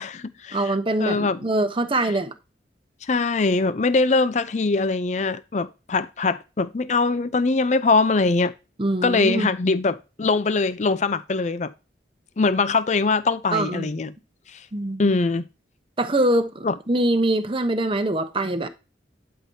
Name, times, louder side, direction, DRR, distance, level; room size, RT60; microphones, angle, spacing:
voice 1, 0.0-0.7 1.0-1.4 3.1-8.5 9.0-11.7 12.4-14.1 14.5-14.6 15.0-15.5 16.6-16.7, left 3 dB, 40° left, 0.5 m, -22 dB
voice 2, 0.5-2.3 8.8-9.5 13.5-13.9 14.7-15.1 16.0-18.7, right 1 dB, 30° right, 0.9 m, -23 dB
11.5 x 5.9 x 2.8 m
head